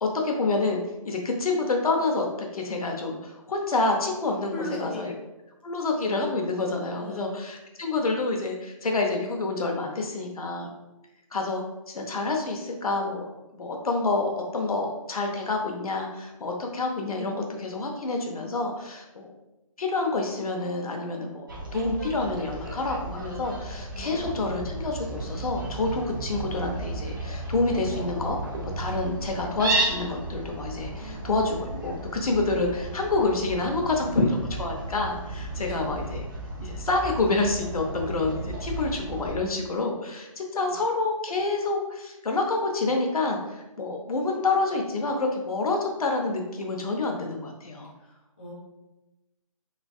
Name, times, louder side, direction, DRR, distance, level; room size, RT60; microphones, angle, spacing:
voice 1, 0.0-4.5 4.8-5.1 5.6-10.7 11.3-13.3 13.5-19.3 19.8-28.4 28.8-36.2 36.6-47.9, left 3 dB, 90° left, 2 dB, 0.8 m, -28 dB
voice 2, 4.5-5.1 7.0-7.4 23.9-24.6 31.0-31.3 35.5-35.9 40.6-40.8 48.0-48.5, equal, 15° left, -5 dB, 0.4 m, -39 dB
Fowl, 21.5-39.4, right 2 dB, 35° right, 0.6 m, -34 dB
3.5 x 3.3 x 2.3 m, 1.0 s
hypercardioid pair, 170°, 18 cm